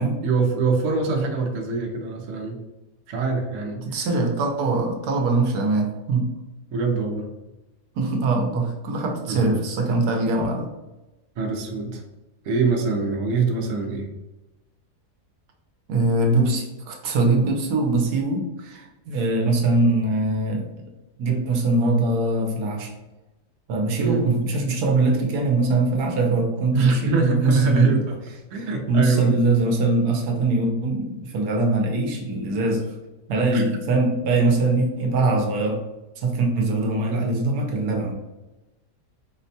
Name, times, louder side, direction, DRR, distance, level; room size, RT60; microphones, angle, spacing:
voice 1, 0.2-2.6 3.1-4.0 6.7-7.3 9.3-9.4 11.4-12.0 12.4-14.1 24.0-24.2 26.7-28.2 28.5-29.4 33.5-33.6, right 4 dB, 65° right, 1 dB, 0.9 m, -23 dB
voice 2, 3.8-6.3 7.9-10.7 15.9-20.7 21.2-22.9 23.7-28.0 28.5-32.9 33.3-35.8 36.2-38.1, right 2 dB, 80° right, 2 dB, 1.2 m, -22 dB
4.3 x 2.1 x 2.7 m, 1.0 s
omnidirectional pair, 1.7 m